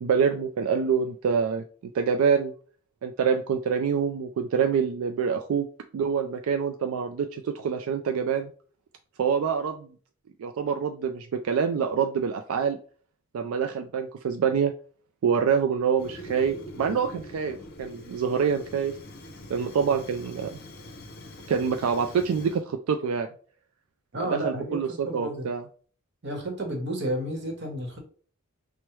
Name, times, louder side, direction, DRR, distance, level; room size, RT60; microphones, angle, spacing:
voice 1, 0.0-1.6 1.9-2.5 3.0-5.7 5.9-8.5 9.2-9.9 10.4-12.8 13.3-14.7 15.2-19.0 19.5-20.6 21.5-23.3 24.2-25.6, right 6 dB, 85° right, 5 dB, 0.3 m, -26 dB
Fire, 16.0-22.6, left 1 dB, 50° left, 0.6 m, -44 dB
voice 2, 24.1-25.5 26.2-28.0, right 1 dB, 55° right, 1 dB, 1.0 m, -31 dB
4.5 x 2.1 x 3.1 m, 0.42 s
head